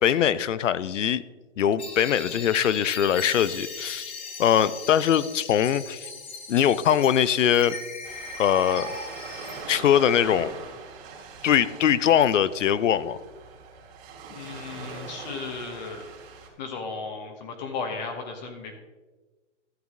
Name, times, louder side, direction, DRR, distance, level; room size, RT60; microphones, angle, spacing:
voice 1, 0.0-1.2 1.6-4.1 4.4-6.1 6.5-7.8 8.4-8.9 9.7-10.5 11.4-13.2, left 9 dB, 85° left, 17 dB, 0.6 m, -22 dB
sound 1, 1.8-9.6, left 4 dB, 10° left, 0.3 m, -39 dB
Ocean, 8.0-16.5, right 4 dB, 30° right, 2.7 m, -41 dB
voice 2, 14.3-16.0 16.6-18.8, left 4 dB, 35° left, 3 dB, 1.2 m, -35 dB
13.0 x 8.0 x 3.6 m, 1.3 s
hypercardioid pair, 150°, 36 cm